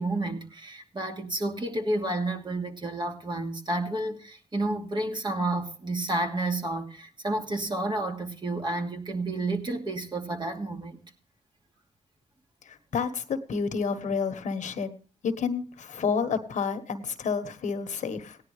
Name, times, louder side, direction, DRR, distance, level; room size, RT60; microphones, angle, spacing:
voice 1, 0.0-11.0, right 2 dB, 40° right, 2.6 m, -30 dB
voice 2, 12.6-14.9 15.2-18.4, left 5 dB, 75° left, 1.4 m, -30 dB
17.0 x 10.5 x 3.2 m
cardioid pair, 70°, 13 cm